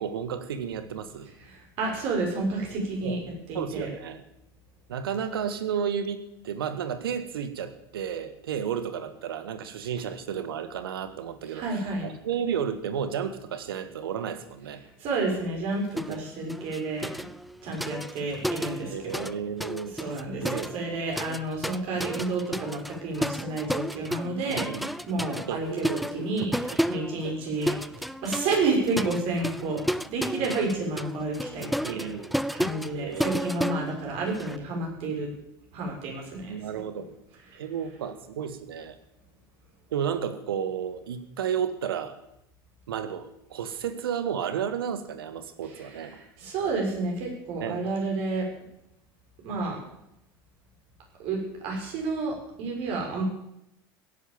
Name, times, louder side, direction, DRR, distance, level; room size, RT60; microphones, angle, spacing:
voice 1, 0.0-1.3 3.0-3.2 3.5-4.2 4.9-14.8 16.1-16.3 18.9-19.9 20.4-21.0 24.5-24.9 25.5-26.3 26.6-26.8 27.2-27.3 30.4-30.5 31.8-32.3 32.9-33.7 36.5-37.1 37.5-38.9 39.9-42.2 42.9-46.2 47.6-47.8, right 8 dB, 70° right, 11 dB, 1.7 m, -32 dB
voice 2, 1.5-3.2 3.5-3.9 11.5-12.1 15.0-17.1 17.6-19.3 20.0-27.7 28.2-31.9 32.5-35.3 35.7-36.5 45.8-46.1 46.4-48.4 49.4-49.8 51.2-53.2, right 3 dB, 50° right, 0 dB, 6.8 m, -30 dB
sound 1, 16.0-16.2 16.5-19.3 19.6-34.6, equal, ahead, 0.6 m, -32 dB
16.5 x 11.0 x 7.3 m, 0.82 s
figure-of-eight pair, 75°, 13 cm